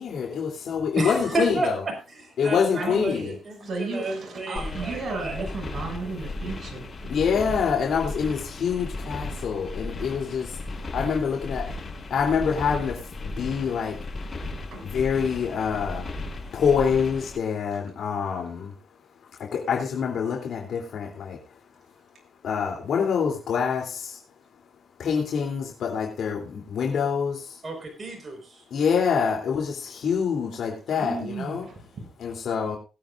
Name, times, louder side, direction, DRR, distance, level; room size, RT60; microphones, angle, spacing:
voice 1, 0.0-1.8 2.4-3.4 7.1-10.6 10.9-11.7 12.1-14.0 14.8-16.1 16.5-18.7 19.4-21.4 22.4-24.2 25.0-27.6 28.7-31.7 32.2-32.8, left 6 dB, 70° left, 0 dB, 3.2 m, -26 dB
voice 2, 0.9-5.5 27.6-28.6, right 2 dB, 40° right, 3 dB, 5.0 m, -31 dB
voice 3, 2.7-3.3 3.6-7.2 11.6-11.7 13.2-13.3 14.7-14.9 30.9-32.1, right 3 dB, 55° right, 1 dB, 6.9 m, -34 dB
sound 1, 4.6-17.4, left 2 dB, 40° left, 5.9 m, -35 dB
20.5 x 8.9 x 2.6 m, 0.31 s
cardioid pair, 70°, 0 cm